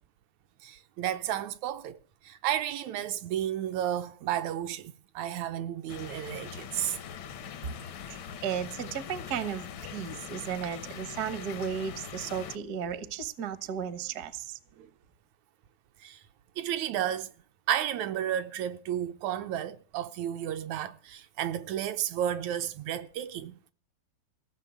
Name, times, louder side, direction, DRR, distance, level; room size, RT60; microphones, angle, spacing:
voice 1, 0.6-2.0 2.2-7.0 14.8-14.9 16.0-16.2 16.6-17.3 17.7-23.7, right 11 dB, 75° right, 2.0 m, -32 dB
sound 1, 5.9-12.6, left 8 dB, 70° left, 1.2 m, -42 dB
voice 2, 8.1-9.7 9.9-14.6, right 8 dB, 55° right, 1.0 m, -34 dB
16.5 x 6.8 x 8.2 m
omnidirectional pair, 3.5 m